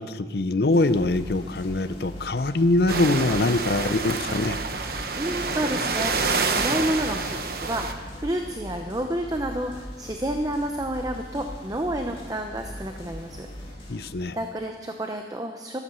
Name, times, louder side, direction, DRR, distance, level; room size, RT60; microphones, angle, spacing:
voice 1, 0.0-4.6 13.9-14.4, left 2 dB, 55° left, 13 dB, 0.6 m, -23 dB
sound 1, 0.7-14.1, equal, 30° left, 2.7 m, -40 dB
sound 2, 2.9-7.9, right 4 dB, 55° right, 1.0 m, -28 dB
voice 2, 5.2-13.5 14.3-15.8, right 1 dB, 20° right, 4 dB, 0.7 m, -30 dB
13.5 x 12.5 x 6.9 m, 1.5 s
head